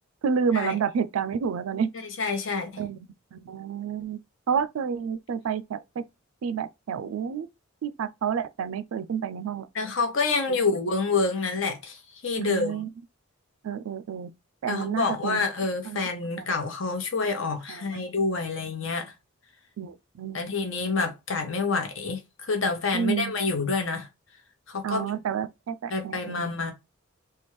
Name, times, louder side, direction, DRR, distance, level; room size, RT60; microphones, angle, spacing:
voice 1, 0.2-1.9 2.8-3.0 3.3-4.2 4.5-6.0 6.4-7.5 7.8-9.7 10.5-10.6 12.4-12.9 13.6-14.3 14.6-15.5 15.9-16.0 16.4-16.5 17.7-18.1 19.8-20.4 22.9-23.4 24.8-26.5, right 7 dB, 85° right, 0.4 m, -29 dB
voice 2, 2.2-2.8 9.7-12.8 14.7-19.1 20.3-24.1 24.7-25.1 25.9-26.7, left 4 dB, 60° left, 0.9 m, -28 dB
3.4 x 2.3 x 3.0 m
head